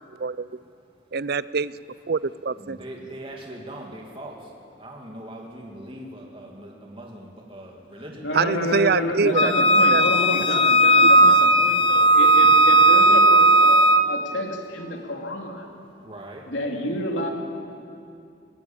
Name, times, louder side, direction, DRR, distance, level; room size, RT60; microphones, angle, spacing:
voice 1, 1.1-1.7 2.1-2.8 8.3-9.5 9.9-10.0 10.3-10.5 11.0-11.3, right 5 dB, 55° right, 18 dB, 0.5 m, -24 dB
voice 2, 2.6-4.5 4.8-9.8 16.0-16.5, right 1 dB, 30° right, 0 dB, 2.5 m, -40 dB
voice 3, 8.2-15.7 16.5-17.3, left 1 dB, 85° left, 1 dB, 3.0 m, -29 dB
Wind instrument woodwind instrument, 9.3-14.1, right 1 dB, 30° left, 0.7 m, -16 dB
20.5 x 18.0 x 8.8 m, 2.5 s
head